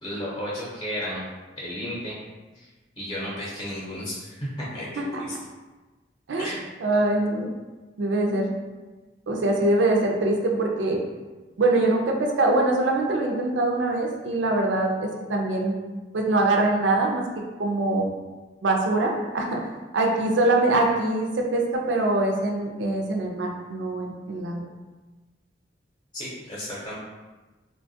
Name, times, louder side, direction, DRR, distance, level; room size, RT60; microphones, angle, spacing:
voice 1, 0.0-1.2 1.6-2.1 3.0-5.4 6.4-6.6 26.1-26.9, equal, 25° left, -7 dB, 0.7 m, -33 dB
voice 2, 6.8-7.5 8.0-8.5 9.3-11.0 11.6-15.8 16.1-18.1 18.6-19.6 19.9-24.6, right 2 dB, 80° right, 1 dB, 0.4 m, -23 dB
3.4 x 2.2 x 2.6 m, 1.2 s
head